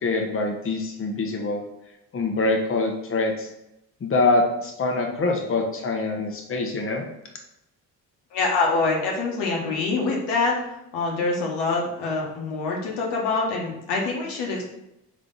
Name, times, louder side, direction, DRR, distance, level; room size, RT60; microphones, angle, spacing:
voice 1, 0.0-1.6 2.1-3.5 4.0-7.0, left 3 dB, 30° left, 2 dB, 1.0 m, -24 dB
voice 2, 8.3-14.6, left 3 dB, 80° left, -2 dB, 1.2 m, -25 dB
3.6 x 3.2 x 4.0 m, 0.86 s
hypercardioid pair, 55°, 41 cm